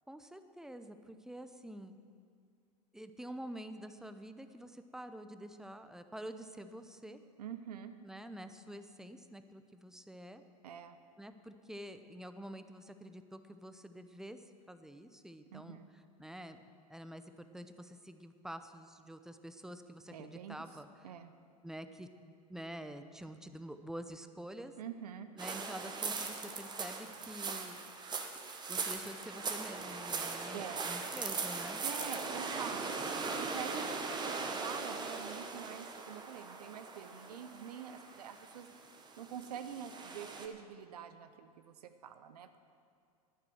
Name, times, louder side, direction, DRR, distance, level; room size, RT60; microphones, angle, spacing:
voice 1, 0.1-2.0 2.9-7.2 8.0-10.4 11.2-14.4 14.7-15.8 16.2-16.6 16.9-21.1 21.6-22.1 22.5-24.7 25.4-27.8 28.7-31.8, right 1 dB, ahead, 9 dB, 0.7 m, -47 dB
voice 2, 7.4-7.9 10.6-11.0 15.5-15.9 20.1-20.6 21.0-21.3 24.8-25.3 30.5-30.8 31.8-33.0 33.4-38.7 39.2-42.6, right 8 dB, 75° right, 10 dB, 0.8 m, -46 dB
sound 1, 25.4-40.5, right 4 dB, 20° right, 1.3 m, -40 dB
10.5 x 9.8 x 7.8 m, 2.3 s
hypercardioid pair, 100°, 20 cm